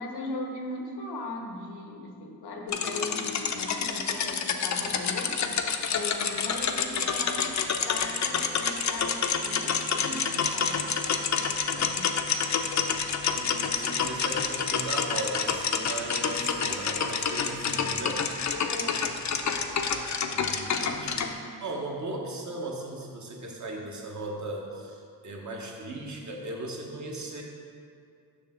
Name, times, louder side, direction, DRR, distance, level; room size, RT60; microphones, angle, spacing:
voice 1, 0.0-5.4 5.9-7.5 7.8-10.9 11.3-12.1 18.6-19.1, left 2 dB, 85° left, 2 dB, 1.0 m, -38 dB
sound 1, 2.7-21.3, left 6 dB, 45° left, 0.6 m, -28 dB
voice 2, 13.3-18.3 20.3-21.3 21.6-27.4, right 2 dB, 50° right, 0 dB, 1.2 m, -37 dB
6.6 x 5.9 x 3.7 m, 2.4 s
cardioid pair, 65°, 38 cm